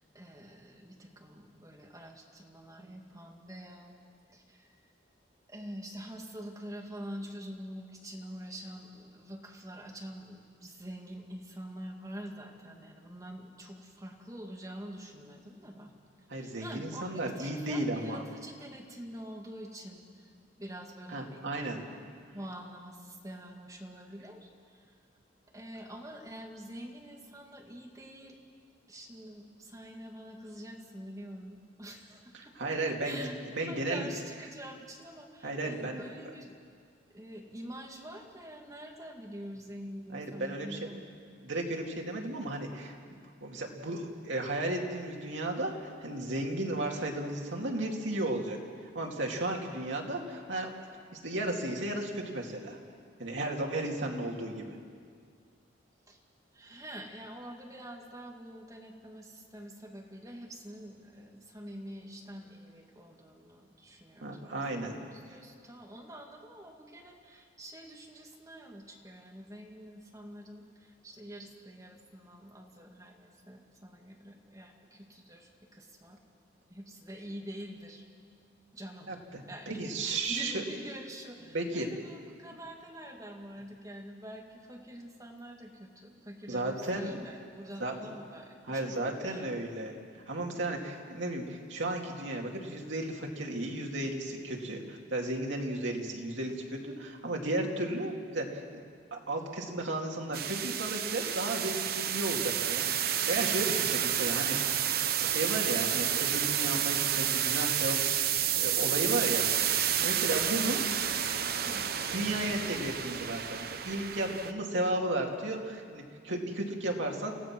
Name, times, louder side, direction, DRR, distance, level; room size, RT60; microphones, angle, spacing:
voice 1, 0.0-3.9 4.3-4.8 5.5-15.9 16.3-20.3 20.6-21.4 21.7-22.0 22.3-24.9 25.5-28.4 28.9-36.5 37.1-41.4 56.1-56.2 56.5-76.2 76.7-78.0 78.7-79.1 79.5-89.5 103.7-103.9 110.6-111.2 111.6-111.9, equal, 20° right, 1 dB, 2.1 m, -46 dB
voice 2, 16.3-18.2 21.1-21.8 32.6-33.2 33.5-34.1 35.4-36.0 40.1-40.8 41.4-42.9 43.4-45.7 46.0-48.6 48.9-50.7 51.2-52.8 53.2-54.8 64.2-65.0 79.1-79.2 79.7-80.6 81.5-81.9 86.5-87.2 87.8-88.1 88.7-90.0 90.3-98.8 99.1-104.6 105.2-108.3 108.6-109.7 110.0-110.8 112.1-117.3, right 1 dB, 80° right, 0 dB, 2.5 m, -34 dB
sound 1, 100.3-114.5, right 10 dB, 50° right, 0.8 m, -30 dB
28.5 x 15.5 x 6.1 m, 2.1 s
head